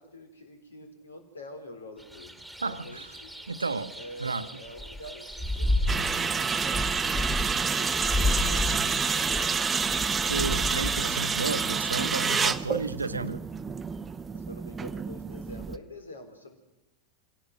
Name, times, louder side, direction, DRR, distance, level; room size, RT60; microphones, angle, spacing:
voice 1, 0.0-2.3 2.6-3.3 3.9-9.6 14.3-16.6, left 1 dB, 75° left, 6 dB, 4.1 m, -46 dB
sound 1, 2.0-8.7, right 1 dB, ahead, 2.2 m, -45 dB
voice 2, 2.6-3.2 3.5-4.5 10.3-13.4, right 4 dB, 75° right, 14 dB, 0.9 m, -32 dB
sound 2, 4.8-5.1 5.3-6.3 6.6-11.2, left 2 dB, 20° left, 2.8 m, -29 dB
sound 3, 5.9-15.8, right 5 dB, 15° right, 0.7 m, -28 dB
27.0 x 17.5 x 6.1 m, 0.94 s
figure-of-eight pair, 90°, 0 cm